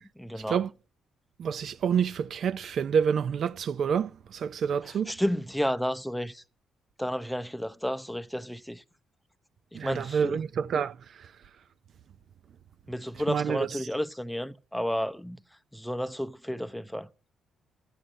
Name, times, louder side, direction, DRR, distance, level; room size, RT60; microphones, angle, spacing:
voice 1, 0.2-0.6 5.1-6.4 7.0-8.8 9.7-10.4 12.9-15.4 15.7-17.1, equal, ahead, 0.7 m, -31 dB
voice 2, 1.4-5.1 9.7-11.3 13.3-13.7, right 7 dB, 60° right, 0.5 m, -28 dB
14.0 x 8.9 x 6.5 m
cardioid pair, 90°, 0 cm